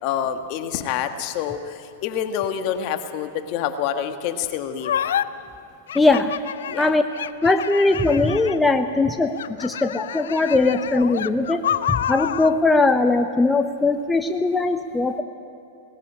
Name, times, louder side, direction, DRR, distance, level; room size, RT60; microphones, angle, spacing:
voice 1, 0.0-4.9 6.7-6.9, left 9 dB, 50° left, 8 dB, 1.4 m, -27 dB
sound 1, 4.8-5.2 5.9-8.7 9.3-12.6, left 9 dB, 75° left, 0.5 m, -28 dB
voice 2, 5.9-6.3 6.8-7.0 7.4-11.6 11.9-15.2, left 3 dB, 10° left, 7 dB, 0.8 m, -20 dB
18.5 x 14.5 x 9.8 m, 2.5 s
hypercardioid pair, 105°, 0 cm